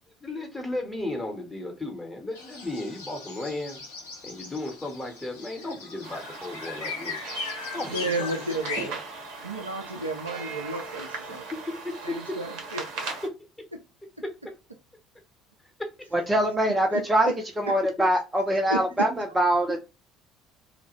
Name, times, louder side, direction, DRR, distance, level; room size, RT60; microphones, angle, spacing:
voice 1, 0.2-3.8 4.2-7.2 7.7-8.4 11.3-12.4 13.2-13.3 14.2-14.3 15.6-15.9 17.8-18.1 19.7-19.8, left 2 dB, 15° left, 1.0 m, -35 dB
sound 1, 2.4-8.9, left 4 dB, 70° left, 0.7 m, -38 dB
sound 2, 6.0-13.3, right 4 dB, 60° right, 0.7 m, -38 dB
voice 2, 7.9-9.0 9.4-11.4 12.0-13.1 16.9-17.0 18.7-18.8, right 2 dB, 85° right, 0.4 m, -32 dB
voice 3, 16.3-19.8, right 1 dB, 15° right, 0.5 m, -23 dB
2.3 x 2.1 x 3.0 m
figure-of-eight pair, 55°, 0 cm